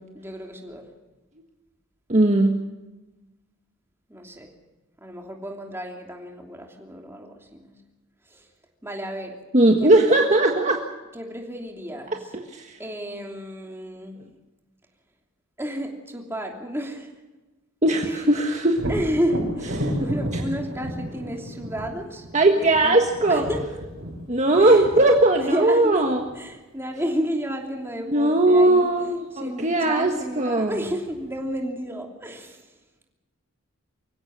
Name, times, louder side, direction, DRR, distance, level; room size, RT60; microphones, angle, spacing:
voice 1, 0.1-0.9 4.1-4.5 5.0-7.7 8.3-8.4 8.8-9.4 9.8-10.1 11.1-12.2 12.8-14.2 15.6-17.1 18.0-18.2 18.9-22.2 22.6-23.0 23.3-23.8 24.6-24.8 25.3-26.1 26.3-28.9 29.4-32.6, equal, 10° right, 2 dB, 3.0 m, -31 dB
voice 2, 2.1-2.6 9.5-10.8 12.3-12.8 17.8-18.8 19.8-20.1 22.3-23.5 24.3-26.2 28.1-30.8, right 2 dB, 35° right, 3 dB, 1.6 m, -19 dB
Thunder, 18.7-26.4 30.0-30.1 30.6-31.5, equal, 60° right, 5.1 m, -33 dB
24.0 x 16.0 x 7.6 m, 1.1 s
head